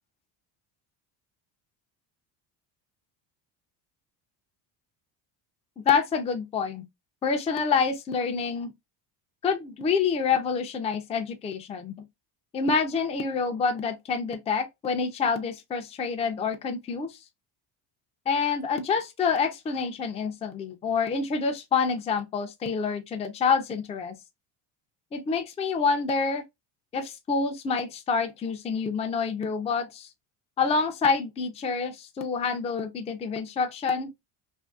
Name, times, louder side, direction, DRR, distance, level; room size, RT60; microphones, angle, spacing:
voice 1, 5.9-6.8 7.2-8.7 9.4-11.9 12.5-17.2 18.3-24.1 25.1-26.4 26.9-30.1 30.6-34.1, left 5 dB, 15° left, 0.3 m, -27 dB
2.6 x 2.6 x 2.2 m
cardioid pair, 105°, 46 cm